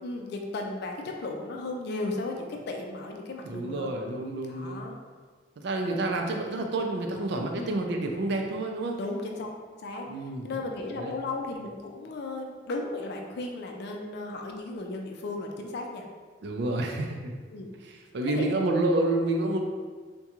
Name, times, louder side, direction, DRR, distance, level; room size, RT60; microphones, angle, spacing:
voice 1, 0.0-3.9 4.5-5.0 7.5-7.7 9.0-9.5 9.8-10.1 10.4-16.0 17.5-17.7 18.3-18.5, left 2 dB, 60° left, 2 dB, 0.4 m, -35 dB
voice 2, 3.4-4.8 5.6-9.0 10.1-10.5 11.0-11.1 16.4-17.3 17.8-19.6, right 2 dB, 65° right, 2 dB, 0.4 m, -29 dB
3.6 x 2.2 x 2.9 m, 1.5 s
head